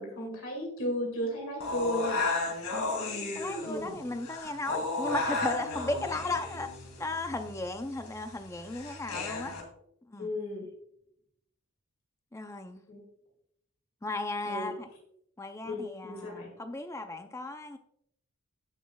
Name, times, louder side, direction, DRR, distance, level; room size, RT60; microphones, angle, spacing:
voice 1, 0.0-2.3 3.6-4.0 10.2-10.7 12.9-13.0 14.4-14.7 15.6-16.5, equal, 65° left, 1 dB, 2.3 m, -34 dB
sound 1, 1.6-9.6, left 3 dB, 85° left, 2.4 m, -34 dB
voice 2, 3.3-6.7 7.0-9.5 10.1-10.3 12.3-12.8 14.0-14.9 15.4-17.8, left 2 dB, 15° left, 6 dB, 0.5 m, -35 dB
16.5 x 6.2 x 2.3 m, 0.75 s
head